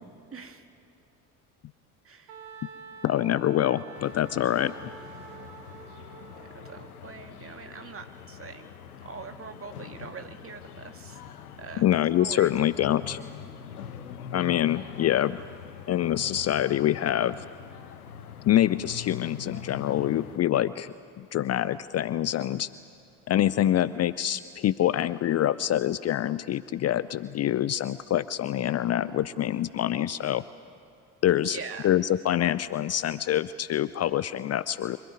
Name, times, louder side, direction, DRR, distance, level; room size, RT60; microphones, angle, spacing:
voice 1, 0.3-0.7 2.0-2.4 6.6-8.7 9.0-11.2 11.6-11.9 12.2-12.5 31.5-31.9, right 5 dB, 30° right, 6 dB, 2.1 m, -42 dB
Wind instrument woodwind instrument, 2.3-6.9, right 6 dB, 65° right, 1.9 m, -47 dB
voice 2, 3.0-4.7 11.8-13.2 14.3-15.4 15.9-17.3 18.5-22.7 23.3-30.4 31.2-31.6 31.8-35.0, left 12 dB, 35° left, 16 dB, 0.6 m, -25 dB
sound 1, 3.9-20.4, left 8 dB, 80° left, 1.1 m, -43 dB
25.5 x 17.0 x 9.5 m, 2.8 s
figure-of-eight pair, 55°, 44 cm